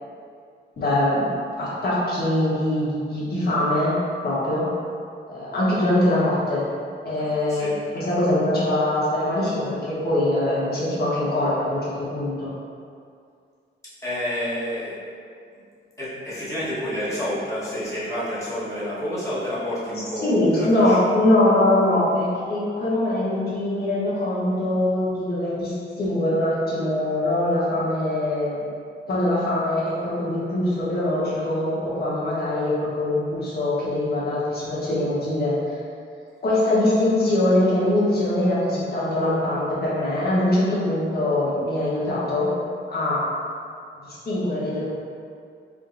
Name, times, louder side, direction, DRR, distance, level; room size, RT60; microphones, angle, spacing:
voice 1, 0.8-1.3 1.6-3.9 4.2-4.7 5.3-6.6 7.0-12.5 20.2-28.6 29.1-35.5 36.4-42.5 42.9-43.2 44.2-44.9, left 1 dB, 50° left, -8 dB, 1.5 m, -22 dB
voice 2, 7.2-7.7 14.0-14.9 16.0-21.2, equal, 15° left, -11 dB, 1.5 m, -29 dB
4.8 x 3.6 x 2.7 m, 2.3 s
wide cardioid pair, 140°, 20 cm